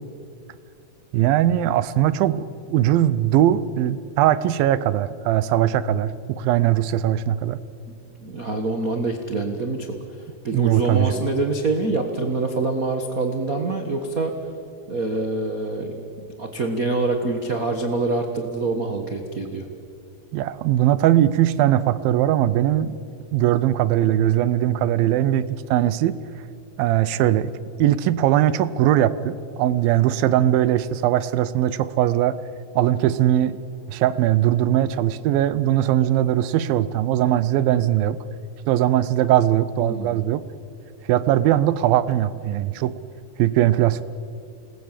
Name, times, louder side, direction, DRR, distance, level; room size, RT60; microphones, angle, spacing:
voice 1, 1.1-7.6 10.5-11.2 20.3-23.0 23.3-26.2 26.8-27.5 27.8-32.4 32.8-33.6 33.9-38.2 38.7-40.4 41.1-43.0 43.4-44.0, right 12 dB, 85° right, 16 dB, 2.5 m, -20 dB
voice 2, 8.2-10.0 10.4-14.4 14.9-15.9 16.4-19.7 39.8-40.2, right 3 dB, 65° right, 4 dB, 0.8 m, -25 dB
28.5 x 20.0 x 7.5 m, 2.4 s
omnidirectional pair, 4.1 m